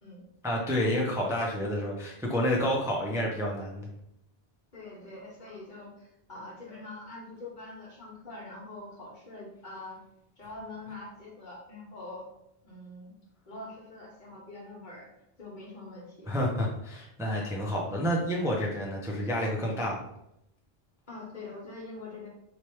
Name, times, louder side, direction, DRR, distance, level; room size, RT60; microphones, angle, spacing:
voice 1, 0.4-3.9 16.3-20.0, equal, 5° right, -2 dB, 0.5 m, -29 dB
voice 2, 4.7-10.0 10.4-12.3 12.6-13.1 13.5-15.1 15.4-16.3 21.1-22.3, left 2 dB, 50° left, -3 dB, 1.4 m, -44 dB
4.3 x 3.3 x 3.0 m, 0.82 s
omnidirectional pair, 1.0 m